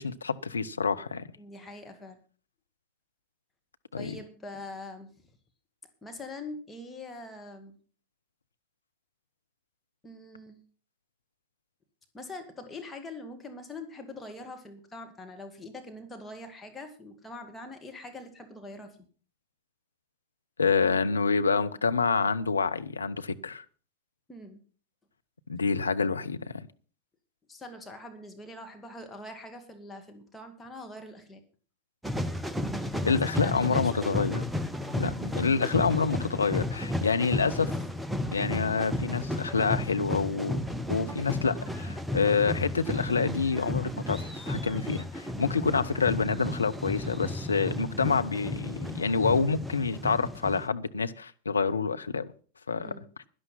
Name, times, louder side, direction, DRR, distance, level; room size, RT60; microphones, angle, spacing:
voice 1, 0.0-1.3 3.9-4.2 20.6-23.6 25.5-26.7 33.0-34.4 35.0-37.7 38.3-40.6 40.9-52.3 52.7-52.9, left 5 dB, 75° left, 0.7 m, -27 dB
voice 2, 1.4-2.2 3.9-5.3 6.0-7.8 10.0-10.6 12.1-19.0 24.3-24.6 27.5-31.4 32.8-34.0 52.8-53.1, left 2 dB, 10° left, 2.3 m, -43 dB
sound 1, 32.0-50.7, left 1 dB, 5° right, 0.8 m, -33 dB
11.5 x 11.0 x 5.7 m
figure-of-eight pair, 90°, 0 cm